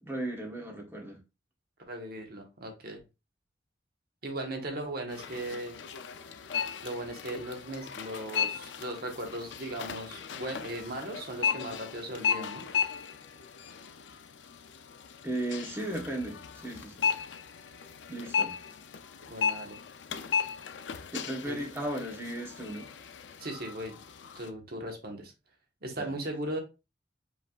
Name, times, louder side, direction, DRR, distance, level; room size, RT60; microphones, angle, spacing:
voice 1, 0.0-1.2 15.2-17.1 18.1-18.6 21.1-22.9 26.0-26.1, right 1 dB, 15° right, 1.2 m, -36 dB
voice 2, 1.9-3.0 4.2-5.8 6.8-12.7 19.3-19.8 21.5-21.6 23.4-24.0 24.3-25.3 25.8-26.6, right 1 dB, 55° right, 1.2 m, -38 dB
sound 1, 5.1-24.5, left 7 dB, 80° left, 0.5 m, -36 dB
5.1 x 3.4 x 2.4 m
head